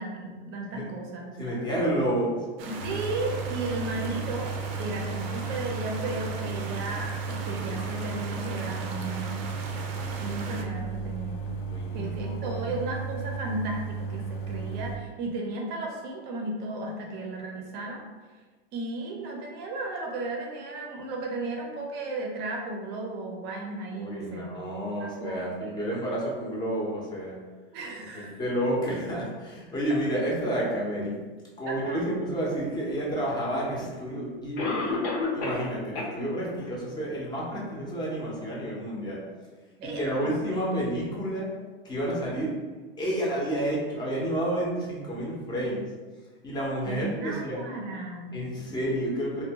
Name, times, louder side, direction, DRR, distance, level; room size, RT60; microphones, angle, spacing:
voice 1, 0.0-1.6 2.7-4.5 4.8-9.4 10.2-11.6 11.9-18.0 18.7-24.5 24.9-25.5 27.7-28.4 31.7-32.1 39.8-40.7 46.9-48.3, right 2 dB, 35° right, 0 dB, 0.6 m, -34 dB
voice 2, 1.4-2.4 11.6-12.7 23.9-27.4 28.1-31.2 31.6-34.9 35.3-39.2 39.8-41.5 41.8-42.5 43.0-45.9 46.4-47.6 48.3-49.4, right 1 dB, 15° left, -5 dB, 0.6 m, -30 dB
sound 1, 2.6-10.6, right 3 dB, 85° right, 0.5 m, -39 dB
sound 2, 2.8-15.0, right 5 dB, 60° left, 0.4 m, -34 dB
Cough, 33.4-33.5 34.6-35.7 35.9-36.1 36.6-36.7 37.3-37.4, left 3 dB, 75° left, 0.9 m, -29 dB
2.6 x 2.2 x 2.7 m, 1.4 s
supercardioid pair, 135°, 29 cm